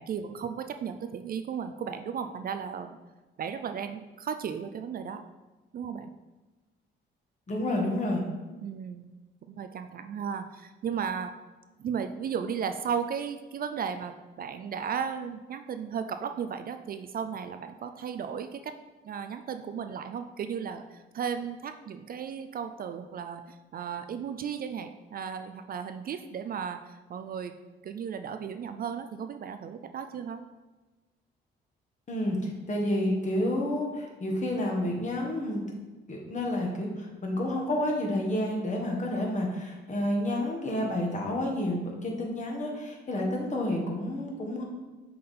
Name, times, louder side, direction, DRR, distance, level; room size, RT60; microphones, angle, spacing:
voice 1, 0.0-3.0 3.4-5.2 5.7-6.1 8.6-9.1 9.5-11.3 11.8-18.7 19.0-27.5 27.8-30.4 43.8-43.9, right 7 dB, 50° right, 8 dB, 0.4 m, -35 dB
voice 2, 7.5-8.2 32.1-35.6 36.1-44.6, left 1 dB, 35° left, 0 dB, 1.5 m, -30 dB
6.5 x 3.9 x 4.2 m, 1.2 s
cardioid pair, 90°, 20 cm